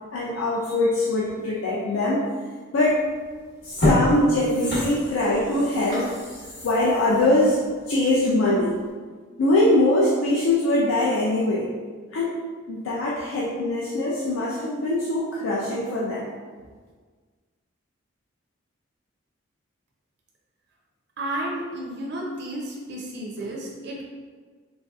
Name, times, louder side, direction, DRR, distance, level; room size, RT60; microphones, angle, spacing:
voice 1, 0.1-2.3 2.7-3.0 3.6-6.1 6.6-7.6 7.9-8.8 9.4-11.7 12.1-12.4 12.7-16.3, left 1 dB, 80° left, -5 dB, 0.4 m, -22 dB
sound 1, 3.0-3.2 3.6-8.3 8.7-8.8, left 1 dB, 55° left, 0.9 m, -28 dB
voice 2, 21.2-24.1, right 1 dB, 55° right, -2 dB, 0.4 m, -32 dB
3.1 x 2.6 x 2.2 m, 1.5 s
head